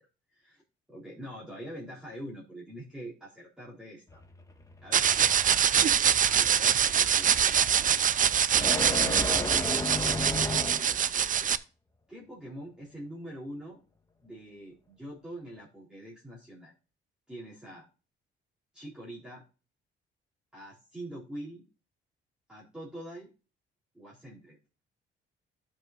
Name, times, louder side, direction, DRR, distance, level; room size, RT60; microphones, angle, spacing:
voice 1, 0.3-0.6 0.9-4.2 4.8-5.1 6.2-7.5 8.5-9.9 10.4-11.1 12.1-13.8 14.2-16.7 17.3-17.9 18.7-19.4 20.5-21.6 22.5-23.3 23.9-24.6, right 1 dB, 5° right, -6 dB, 3.7 m, -44 dB
sound 1, 4.1-11.1, left 2 dB, 15° left, 1.7 m, -35 dB
sound 2, 4.9-11.6, right 8 dB, 40° right, 0.5 m, -24 dB
13.5 x 5.7 x 2.6 m, 0.33 s
cardioid pair, 90°, 20 cm